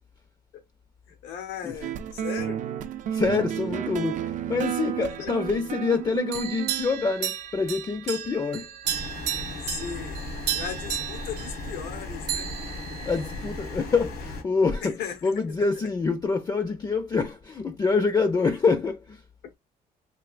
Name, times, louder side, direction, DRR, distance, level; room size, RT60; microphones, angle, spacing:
voice 1, 1.1-2.7 5.0-5.3 9.6-10.2 10.5-12.5 14.8-15.8, left 8 dB, 85° left, 0.9 m, -37 dB
sound 1, 1.8-6.9, right 10 dB, 50° right, 0.4 m, -31 dB
voice 2, 3.0-8.7 13.1-14.9 15.2-19.2, left 4 dB, 25° left, 0.4 m, -26 dB
sound 2, 5.1-5.9 6.3-12.0 12.3-13.7, right 10 dB, 90° right, 0.7 m, -34 dB
sound 3, 8.8-14.4, left 2 dB, 70° left, 1.2 m, -36 dB
3.3 x 2.7 x 2.3 m
cardioid pair, 110°, 17 cm